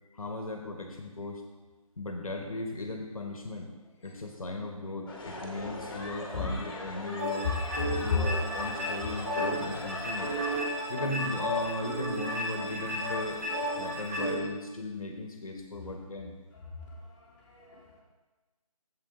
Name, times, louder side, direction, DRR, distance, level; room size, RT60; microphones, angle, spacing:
voice 1, 0.1-1.4 2.0-3.7 4.0-7.5 8.0-10.3 10.9-16.3, left 2 dB, 65° left, 3 dB, 1.2 m, -37 dB
Bristol Riots Shouting and Swearing, 5.1-10.6, left 2 dB, 40° left, 1.4 m, -40 dB
sound 1, 7.2-14.4, equal, 25° right, 1.7 m, -33 dB
voice 2, 16.8-18.0, left 4 dB, 15° left, -8 dB, 1.9 m, -40 dB
8.3 x 7.5 x 3.7 m, 1.2 s
figure-of-eight pair, 160°, 19 cm